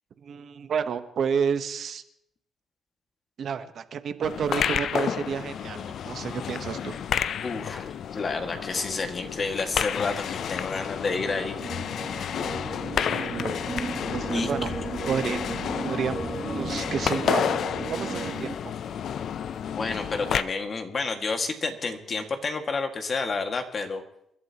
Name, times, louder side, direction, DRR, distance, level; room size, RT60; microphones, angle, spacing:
voice 1, 0.2-2.0 3.4-6.9 13.0-13.6 14.1-14.7 15.0-15.4 15.8-17.5 17.9-18.6, right 7 dB, 60° right, 10 dB, 1.0 m, -30 dB
sound 1, 4.2-20.4, left 8 dB, 65° left, 0.5 m, -31 dB
voice 2, 7.4-11.6 14.3-14.5 19.8-24.0, left 4 dB, 40° left, 5 dB, 1.9 m, -30 dB
sound 2, 11.2-18.5, right 4 dB, 40° right, 0.7 m, -35 dB
28.0 x 11.5 x 3.0 m, 0.76 s
cardioid pair, 90°, 0 cm